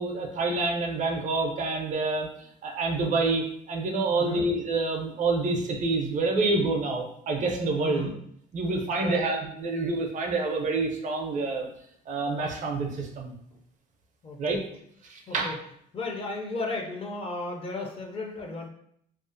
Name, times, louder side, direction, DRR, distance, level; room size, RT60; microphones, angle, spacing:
voice 1, 0.0-8.1 8.5-11.7 12.1-13.3 14.4-14.6 15.0-15.6, right 3 dB, 45° right, 2 dB, 0.5 m, -27 dB
voice 2, 4.1-4.5 7.8-8.1 8.9-9.2 14.2-14.6 15.3-15.6 15.9-18.7, left 2 dB, 35° left, 1 dB, 0.5 m, -34 dB
2.4 x 2.3 x 2.5 m, 0.71 s
cardioid pair, 110°, 17 cm